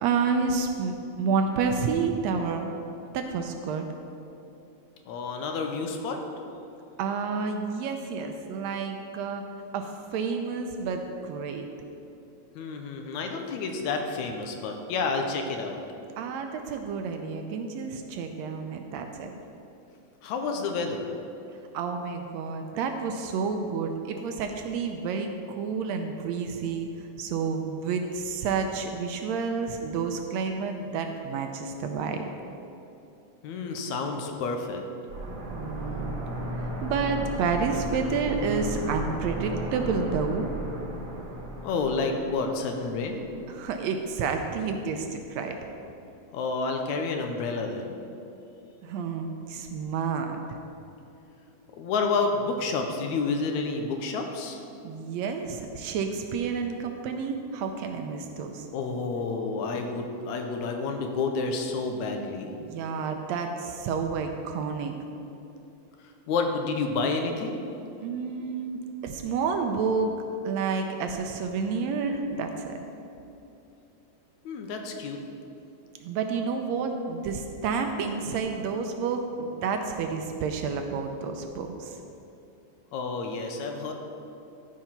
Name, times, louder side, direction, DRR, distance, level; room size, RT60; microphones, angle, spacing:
voice 1, 0.0-2.7 3.1-3.9 7.0-9.4 9.7-11.7 16.2-19.4 21.7-32.2 35.5-36.2 36.6-40.5 43.5-45.6 48.8-50.6 54.8-58.7 62.6-65.0 68.0-70.1 70.5-72.8 76.0-82.0, right 5 dB, 75° right, 5 dB, 1.7 m, -30 dB
voice 2, 5.1-6.2 12.6-15.8 20.2-21.1 33.4-34.8 41.6-43.3 46.3-47.9 51.7-54.6 58.7-62.5 66.3-67.6 74.5-75.2 82.9-83.9, left 4 dB, 80° left, 4 dB, 2.1 m, -29 dB
sound 1, 35.1-43.8 44.1-44.2, right 1 dB, 55° right, 1.1 m, -35 dB
13.5 x 4.9 x 5.7 m, 2.8 s
omnidirectional pair, 3.4 m